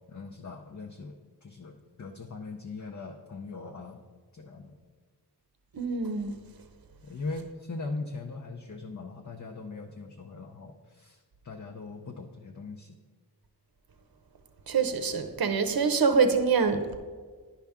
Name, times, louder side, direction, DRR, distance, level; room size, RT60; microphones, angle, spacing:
voice 1, 0.1-4.0 4.3-4.8 7.0-13.0, left 3 dB, 45° left, 0.6 m, -40 dB
voice 2, 5.7-6.3 14.7-16.8, right 5 dB, 60° right, 0.7 m, -25 dB
10.0 x 5.8 x 3.6 m
wide cardioid pair, 45°, 41 cm